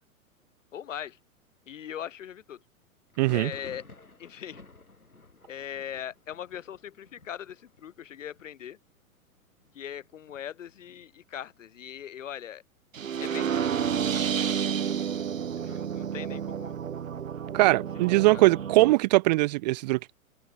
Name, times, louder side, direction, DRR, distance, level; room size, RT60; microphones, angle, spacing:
voice 1, 0.7-1.2 1.7-2.6 3.3-3.8 4.2-4.6 5.5-8.8 9.7-12.6 13.2-14.2 15.6-16.7 18.3-18.4, left 9 dB, 60° left, 6.8 m, -40 dB
Thunder, 3.1-12.6 12.9-13.6 13.8-14.8 15.2-16.9, left 3 dB, 80° left, 6.5 m, -55 dB
voice 2, 3.2-3.5 17.5-20.0, right 20 dB, 30° right, 0.6 m, -21 dB
sound 1, 12.9-18.9, right 8 dB, 65° right, 2.3 m, -30 dB
figure-of-eight pair, 105°, 43 cm